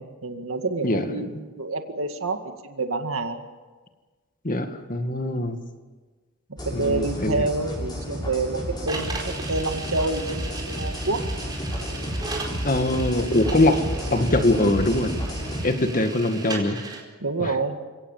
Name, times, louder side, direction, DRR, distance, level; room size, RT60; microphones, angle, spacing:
voice 1, 0.2-3.4 5.2-5.4 6.6-11.2 17.2-17.8, right 3 dB, 65° right, 6 dB, 2.1 m, -28 dB
voice 2, 0.8-1.3 4.4-5.6 6.7-7.4 12.6-13.8 14.1-15.1 15.6-16.8 17.4-17.5, left 1 dB, 40° left, 6 dB, 2.1 m, -22 dB
sound 1, 6.6-15.7, equal, 20° left, 7.1 m, -31 dB
sound 2, 8.9-17.0, right 3 dB, 20° right, 4.6 m, -37 dB
30.0 x 17.5 x 7.4 m, 1.3 s
head